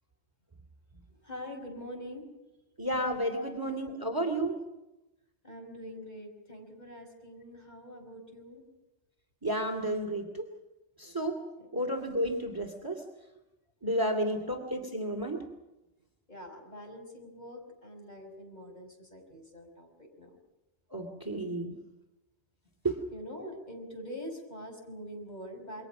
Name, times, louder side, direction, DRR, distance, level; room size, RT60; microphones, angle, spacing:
voice 1, 1.2-2.2 3.3-3.5 4.0-4.1 5.4-8.6 11.6-11.7 14.0-14.4 16.3-20.3 23.1-25.9, equal, 40° left, 2 dB, 5.7 m, -44 dB
voice 2, 2.8-4.6 9.4-10.5 11.0-11.4 11.7-13.0 13.8-15.4 20.9-21.7 22.8-23.0, right 1 dB, 20° right, 4 dB, 2.5 m, -31 dB
28.5 x 23.0 x 6.1 m, 0.99 s
omnidirectional pair, 1.1 m